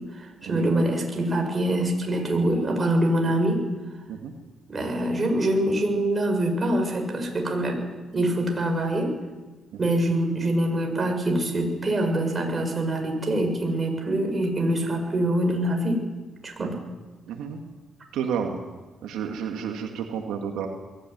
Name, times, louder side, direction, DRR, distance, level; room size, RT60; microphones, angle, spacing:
voice 1, 0.2-3.6 4.7-7.8 8.1-9.1 9.8-16.0 16.4-16.7, right 1 dB, 30° right, 3 dB, 6.5 m, -24 dB
voice 2, 17.3-17.6 18.1-18.6 19.0-20.7, right 7 dB, 85° right, 2 dB, 2.3 m, -31 dB
22.0 x 15.5 x 9.5 m, 1.3 s
cardioid pair, 90°, 0 cm